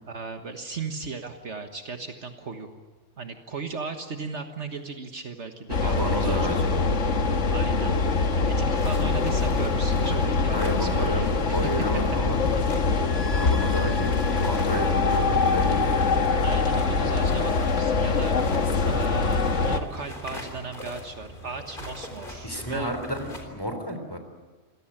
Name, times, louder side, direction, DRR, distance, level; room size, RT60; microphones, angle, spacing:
voice 1, 0.1-2.7 3.2-6.7 7.5-8.0 8.4-12.0 14.0-14.1 15.6-15.9 16.4-18.5 18.8-23.0, right 4 dB, 65° right, 6 dB, 1.7 m, -36 dB
sound 1, 5.7-19.8, left 4 dB, 75° left, 1.8 m, -23 dB
voice 2, 5.8-6.7 10.5-11.2 11.5-12.4 13.3-15.9 22.4-24.2, equal, 20° left, 6 dB, 3.6 m, -31 dB
sound 2, 8.8-23.4, left 1 dB, 45° left, 3.9 m, -41 dB
27.5 x 17.5 x 8.9 m, 1.4 s
omnidirectional pair, 1.3 m